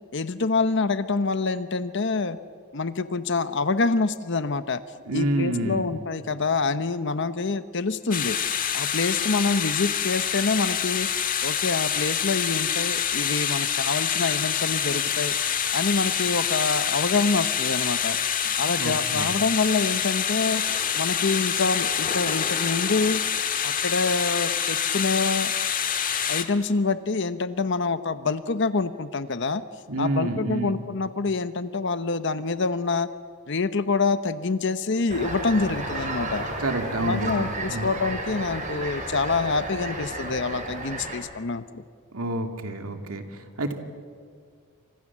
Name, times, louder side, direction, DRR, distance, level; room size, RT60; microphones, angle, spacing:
voice 1, 0.1-2.4 2.7-4.8 5.1-8.4 8.7-11.1 11.4-15.3 15.7-18.2 18.6-20.6 20.9-23.2 23.6-25.5 26.3-29.6 30.0-33.1 33.5-36.5 37.0-41.8, left 4 dB, 55° left, 12 dB, 0.8 m, -26 dB
voice 2, 5.1-5.9 18.8-19.4 29.9-30.7 36.6-37.9 42.1-43.7, right 1 dB, 75° right, 5 dB, 2.7 m, -29 dB
sound 1, 8.1-26.4, left 8 dB, 40° left, 1.6 m, -26 dB
sound 2, 35.1-41.2, right 2 dB, 35° right, 5.1 m, -32 dB
29.5 x 25.5 x 7.4 m, 2.1 s
head